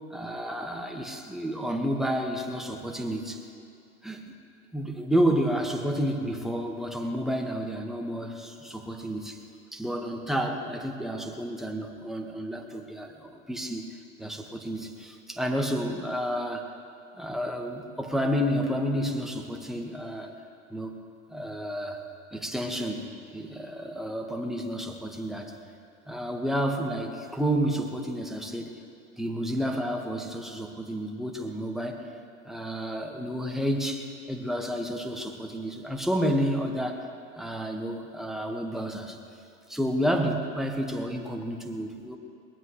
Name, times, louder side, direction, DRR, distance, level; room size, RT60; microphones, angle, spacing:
voice 1, 0.1-3.4 4.0-4.3 4.7-9.4 9.7-13.9 14.2-16.7 17.2-20.3 20.7-21.0 21.3-22.0 22.3-25.5 26.1-28.7 29.2-32.0 32.4-37.1 37.4-39.2 39.7-42.2, equal, ahead, 1 dB, 1.7 m, -30 dB
22.0 x 19.5 x 3.3 m, 2.5 s
hypercardioid pair, 95°, 43 cm